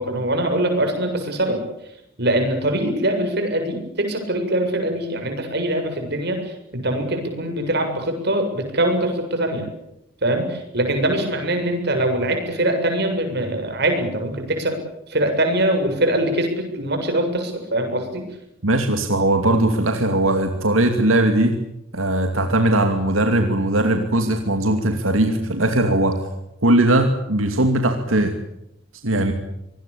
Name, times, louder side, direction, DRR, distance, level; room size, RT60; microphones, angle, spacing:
voice 1, 0.0-1.6 2.2-9.6 10.2-14.8 15.1-18.2, right 1 dB, 55° right, 5 dB, 7.4 m, -22 dB
voice 2, 18.6-21.5 21.9-26.2 26.6-28.3 29.0-29.3, right 1 dB, 90° right, 5 dB, 2.6 m, -19 dB
25.5 x 20.5 x 8.6 m, 0.82 s
head